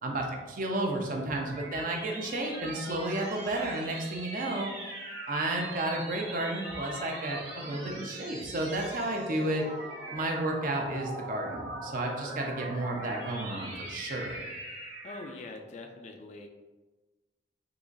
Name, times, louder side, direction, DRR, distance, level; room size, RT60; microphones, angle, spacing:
voice 1, 0.0-4.7 5.3-9.6 10.1-14.4, right 1 dB, 50° right, 1 dB, 0.5 m, -32 dB
sound 1, 0.8-15.5, right 1 dB, 90° right, 1.2 m, -41 dB
voice 2, 15.0-16.5, left 2 dB, 40° left, 4 dB, 0.3 m, -43 dB
3.8 x 2.9 x 2.5 m, 1.2 s
head